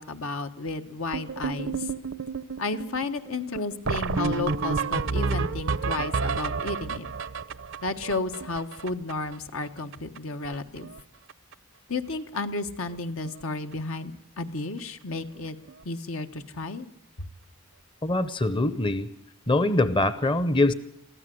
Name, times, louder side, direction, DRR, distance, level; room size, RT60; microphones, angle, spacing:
voice 1, 0.0-1.9 2.6-7.1 7.8-10.9 11.9-15.6 15.8-16.9 17.2-17.3, left 3 dB, 80° left, 7 dB, 1.3 m, -32 dB
sound 1, 1.1-9.3 9.6-9.7 9.9-10.2 10.5-11.0 11.3-11.5 12.4-12.5 12.9-13.0 13.3-13.4 15.7-15.8 18.1-18.2, right 4 dB, 65° right, 0.7 m, -30 dB
voice 2, 18.0-19.1 19.5-20.7, left 2 dB, 25° left, 14 dB, 0.7 m, -23 dB
23.0 x 15.0 x 7.8 m, 0.75 s
head